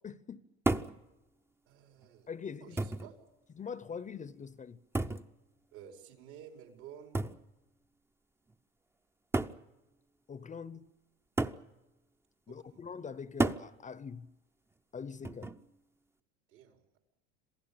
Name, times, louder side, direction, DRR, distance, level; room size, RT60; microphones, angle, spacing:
voice 1, 0.0-0.4 2.3-2.8 3.6-4.8 10.3-10.9 12.5-14.3 14.9-15.5, left 6 dB, 25° left, 0.9 m, -43 dB
sound 1, 0.7-1.0 2.0-2.1 2.8-3.1 4.9-5.3 7.1-7.4 8.5-8.6 9.3-9.6 11.4-11.7 13.4-13.7 15.2-15.6, right 2 dB, 5° right, 0.7 m, -32 dB
voice 2, 1.6-2.3 2.6-3.2 5.7-7.2 12.5-12.9 16.5-17.0, right 9 dB, 75° right, 5.1 m, -52 dB
27.0 x 16.0 x 8.9 m
supercardioid pair, 100°, 33 cm